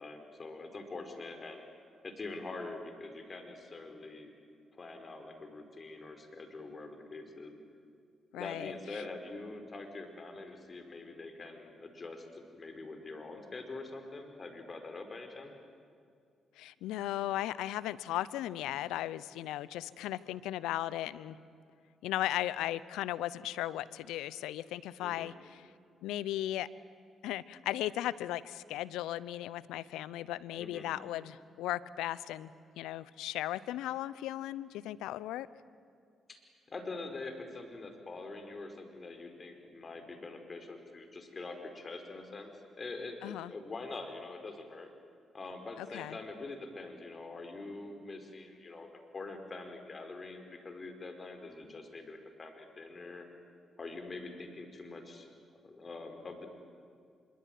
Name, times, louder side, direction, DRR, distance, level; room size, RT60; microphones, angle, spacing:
voice 1, 0.0-1.7 2.0-4.3 4.7-7.6 8.3-15.5 25.0-25.3 30.6-30.9 36.3-36.4 36.7-42.5 42.8-44.9 45.3-53.2 53.8-55.3 55.6-56.5, left 3 dB, 40° left, 6 dB, 5.0 m, -44 dB
voice 2, 8.3-8.7 16.6-21.4 22.0-25.7 26.0-26.7 27.2-32.5 32.8-35.5 43.2-43.5 45.8-46.2, left 14 dB, 80° left, 18 dB, 0.7 m, -36 dB
25.5 x 23.5 x 9.3 m, 2.3 s
hypercardioid pair, 50°, 0 cm